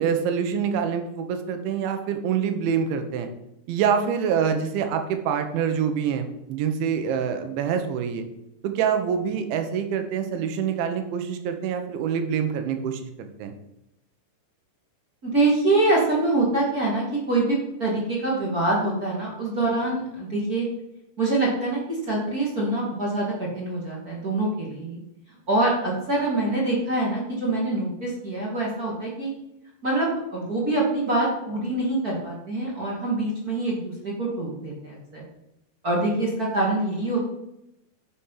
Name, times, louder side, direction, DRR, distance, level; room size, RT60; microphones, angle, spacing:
voice 1, 0.0-3.3 3.7-8.2 8.6-13.5, right 7 dB, 90° right, 7 dB, 3.5 m, -26 dB
voice 2, 15.2-20.7 21.2-25.0 25.5-29.3 29.8-35.2 35.8-37.2, right 2 dB, 25° right, -4 dB, 2.2 m, -25 dB
10.0 x 7.3 x 5.7 m, 0.84 s
omnidirectional pair, 5.1 m